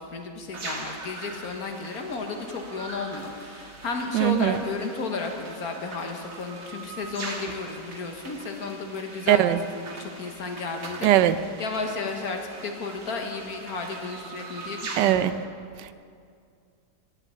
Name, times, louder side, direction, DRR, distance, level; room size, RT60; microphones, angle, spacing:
voice 1, 0.0-11.1 11.6-15.2, left 4 dB, 60° left, 3 dB, 1.6 m, -33 dB
sound 1, 0.5-15.1, right 3 dB, 55° right, 1.8 m, -41 dB
voice 2, 4.1-4.6 9.3-9.6 11.0-11.4 15.0-15.5 15.8-15.9, right 13 dB, 90° right, 13 dB, 1.2 m, -21 dB
10.5 x 9.2 x 8.6 m, 2.3 s
omnidirectional pair, 1.8 m